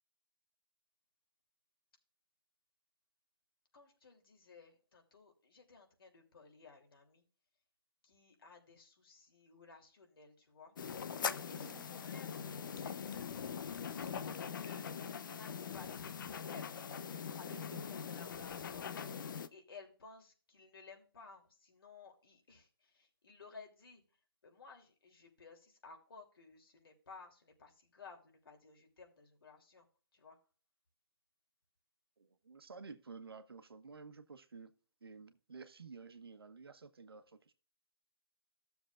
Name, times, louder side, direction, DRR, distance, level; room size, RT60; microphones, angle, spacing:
voice 1, 3.7-7.2 8.0-10.7 11.5-12.4 12.7-13.2 13.9-16.8 17.3-19.2 19.5-24.0 24.4-29.9 30.1-30.4, left 4 dB, 70° left, 3.0 m, -57 dB
sound 1, 10.8-19.5, left 7 dB, 55° left, 0.8 m, -42 dB
voice 2, 11.5-11.9 17.4-17.9 32.2-34.7 35.0-37.5, right 4 dB, 85° right, 1.2 m, -52 dB
14.0 x 7.0 x 2.5 m
hypercardioid pair, 145°, 12 cm